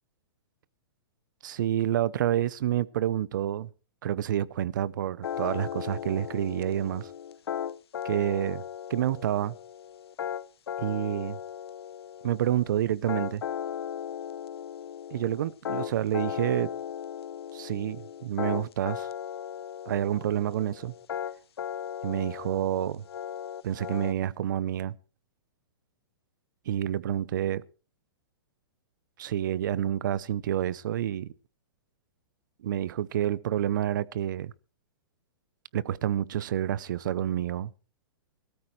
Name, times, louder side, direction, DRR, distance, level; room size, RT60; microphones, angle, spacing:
voice 1, 1.4-3.7 4.0-7.1 8.0-8.6 8.9-9.5 10.8-11.4 12.2-13.4 15.1-16.7 17.5-19.1 19.9-20.9 22.0-23.0 23.6-24.9 26.7-27.6 29.2-31.3 32.6-34.5 35.7-37.7, right 11 dB, 55° right, 0.7 m, -28 dB
sound 1, 5.2-24.1, left 9 dB, 90° left, 0.7 m, -37 dB
19.5 x 13.5 x 3.2 m
hypercardioid pair, 170°, 13 cm